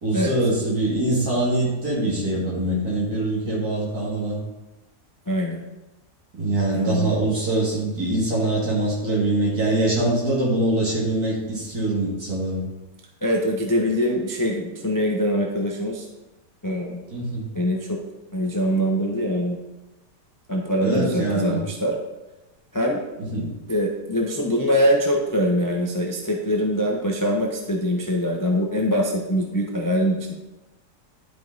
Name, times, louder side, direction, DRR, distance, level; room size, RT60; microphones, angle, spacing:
voice 1, 0.0-4.4 6.3-12.6 17.1-17.5 20.8-21.6 23.2-23.5, right 2 dB, 65° right, -5 dB, 2.9 m, -23 dB
voice 2, 5.3-5.7 6.7-7.1 13.2-16.1 16.6-17.0 17.5-18.0 18.3-19.6 20.5-21.9 22.7-23.0 23.7-30.3, equal, 20° left, 0 dB, 0.5 m, -23 dB
11.0 x 5.3 x 4.0 m, 1.0 s
omnidirectional pair, 1.7 m